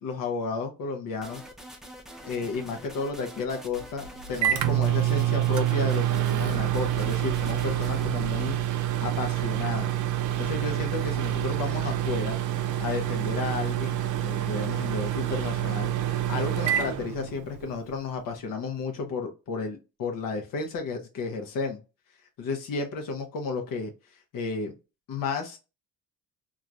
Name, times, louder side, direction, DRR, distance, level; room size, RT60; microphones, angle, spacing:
voice 1, 0.0-1.4 2.2-9.9 10.4-12.4 12.8-21.8 22.4-23.9 24.3-24.7 25.1-25.6, left 4 dB, 60° left, 0.8 m, -32 dB
sound 1, 1.2-8.1, right 1 dB, ahead, 0.5 m, -45 dB
Microwave oven, 3.7-17.8, right 12 dB, 55° right, 0.5 m, -27 dB
3.0 x 2.4 x 2.5 m
cardioid pair, 115°, 37 cm